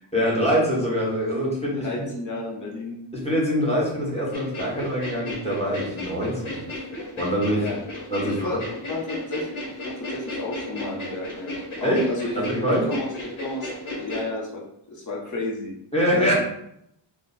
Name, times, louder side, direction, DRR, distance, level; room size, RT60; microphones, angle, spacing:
voice 1, 0.1-2.1 3.1-6.6 7.1-7.6 8.1-8.6 11.8-12.0 12.5-12.9 15.9-16.3, equal, 15° left, -5 dB, 1.5 m, -24 dB
voice 2, 1.8-3.0 7.5-7.7 8.2-12.3 12.9-13.1 13.4-14.6 14.9-15.8 16.1-16.3, left 2 dB, 40° left, -3 dB, 1.1 m, -32 dB
sound 1, 4.3-14.3, left 1 dB, 90° left, 1.3 m, -34 dB
3.7 x 2.3 x 4.2 m, 0.75 s
wide cardioid pair, 80°, 48 cm